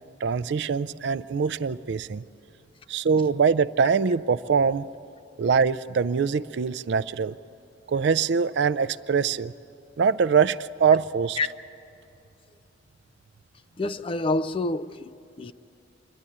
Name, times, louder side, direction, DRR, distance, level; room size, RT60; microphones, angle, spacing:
voice 1, 0.2-2.2 2.9-4.9 5.4-7.3 7.9-9.5 10.0-11.4, right 6 dB, 65° right, 0.4 m, -23 dB
voice 2, 13.8-15.5, left 2 dB, 30° left, 0.4 m, -28 dB
26.5 x 10.5 x 9.9 m
head